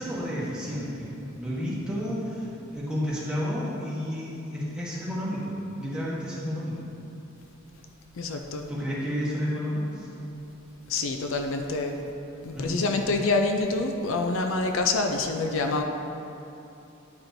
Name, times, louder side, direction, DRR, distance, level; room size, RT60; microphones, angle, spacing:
voice 1, 0.0-6.8 8.7-10.1 12.5-12.8, equal, 5° right, -8 dB, 1.1 m, -31 dB
voice 2, 8.1-8.7 10.9-12.0 12.4-15.8, left 3 dB, 70° left, 4 dB, 0.4 m, -26 dB
9.6 x 4.3 x 2.6 m, 2.8 s
head